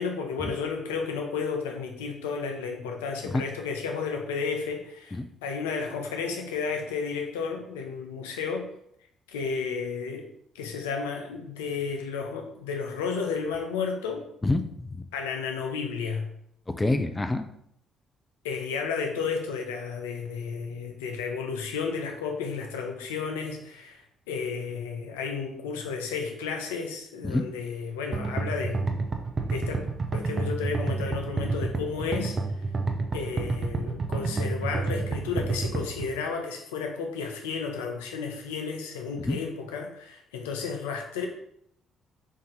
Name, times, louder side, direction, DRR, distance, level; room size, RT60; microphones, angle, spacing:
voice 1, 0.0-8.7 9.3-10.3 10.5-14.2 15.1-16.3 18.4-24.0 24.3-28.8 29.5-29.9 30.1-32.4 33.1-41.3, left 5 dB, 90° left, 3 dB, 0.5 m, -32 dB
voice 2, 14.4-15.0 16.8-17.5 27.2-27.5 39.3-39.4, left 2 dB, 20° left, 8 dB, 0.4 m, -27 dB
sound 1, 28.1-36.1, right 3 dB, 40° right, 0.6 m, -29 dB
3.7 x 2.6 x 3.8 m, 0.73 s
hypercardioid pair, 55°, 0 cm